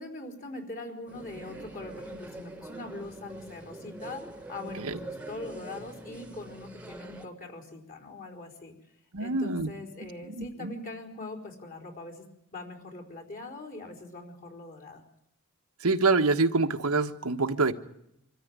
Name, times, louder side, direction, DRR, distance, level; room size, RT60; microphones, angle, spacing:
voice 1, 0.0-8.7 9.2-12.2 12.5-15.0, left 2 dB, 40° left, 4 dB, 4.4 m, -42 dB
sound 1, 1.1-7.3, right 2 dB, 5° right, 1.6 m, -44 dB
voice 2, 9.1-9.7 10.0-10.7 15.8-17.7, right 3 dB, 75° right, 6 dB, 1.4 m, -26 dB
25.5 x 14.0 x 9.7 m, 0.78 s
head